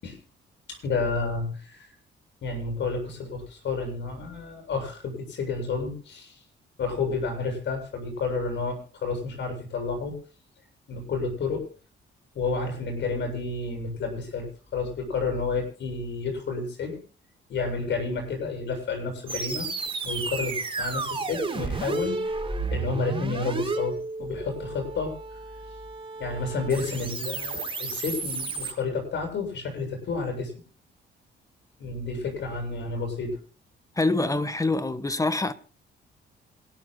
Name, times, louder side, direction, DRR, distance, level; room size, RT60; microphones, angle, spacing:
voice 1, 0.7-1.9 2.4-6.4 6.8-10.2 10.9-11.7 12.3-17.0 17.5-22.4 22.7-25.4 26.2-30.5 31.8-33.4, left 4 dB, 65° left, 7.7 m, -30 dB
sound 1, 19.3-28.7, right 3 dB, 25° right, 4.8 m, -32 dB
voice 2, 34.0-35.5, left 2 dB, 15° left, 1.3 m, -25 dB
27.0 x 13.5 x 2.3 m
cardioid pair, 90°, 20 cm